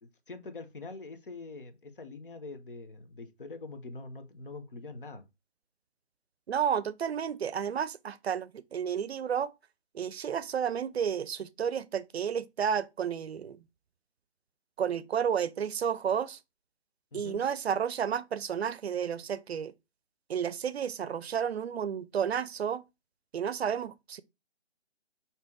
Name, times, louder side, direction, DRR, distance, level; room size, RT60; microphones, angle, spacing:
voice 1, 0.0-5.2 17.1-17.4, left 3 dB, 50° left, 0.8 m, -44 dB
voice 2, 6.5-9.5 9.9-13.6 14.8-16.4 17.1-19.7 20.3-22.8 23.3-24.2, right 8 dB, 65° right, 0.5 m, -31 dB
3.8 x 2.9 x 3.5 m
hypercardioid pair, 170°, 33 cm